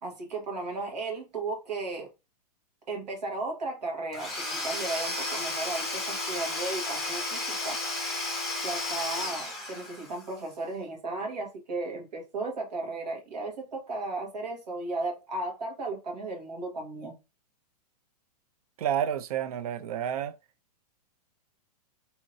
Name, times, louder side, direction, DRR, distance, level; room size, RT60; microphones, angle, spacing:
voice 1, 0.0-2.1 2.9-7.8 8.6-17.2, right 2 dB, 90° right, 1.4 m, -35 dB
Domestic sounds home sounds / Tools, 4.1-10.2, left 2 dB, ahead, 0.5 m, -33 dB
voice 2, 18.8-20.4, right 9 dB, 65° right, 0.4 m, -30 dB
2.8 x 2.7 x 2.6 m
hypercardioid pair, 160°, 21 cm